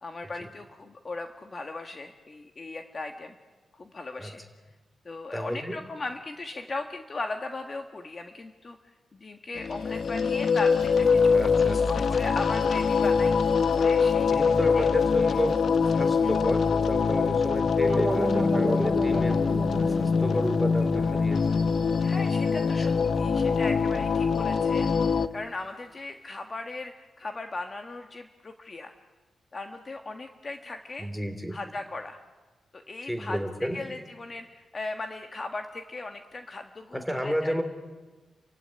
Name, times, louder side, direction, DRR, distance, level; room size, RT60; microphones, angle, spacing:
voice 1, 0.0-3.3 3.7-4.4 5.0-8.8 9.1-13.4 13.7-14.9 16.2-16.3 22.0-28.9 29.5-31.1 31.5-32.2 32.7-37.5, left 3 dB, 35° left, 5 dB, 1.6 m, -38 dB
voice 2, 5.3-5.8 11.3-12.0 14.2-15.6 15.9-19.4 19.8-21.6 31.0-31.6 33.0-33.8 36.9-37.6, equal, 5° left, 8 dB, 3.3 m, -31 dB
sound 1, 9.6-25.3, left 5 dB, 65° left, 1.0 m, -24 dB
sound 2, 17.9-22.8, right 1 dB, 15° right, 3.9 m, -33 dB
30.0 x 16.0 x 9.9 m, 1.2 s
wide cardioid pair, 110°, 0 cm